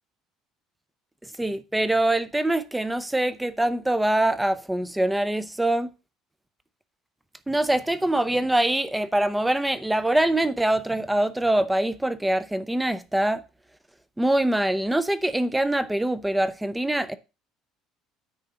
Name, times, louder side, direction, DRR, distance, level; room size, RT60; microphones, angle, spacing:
voice 1, 1.4-5.9 7.5-13.4 14.2-17.2, right 1 dB, 5° right, 0.6 m, -24 dB
9.5 x 3.7 x 6.8 m
cardioid pair, 150°, 0 cm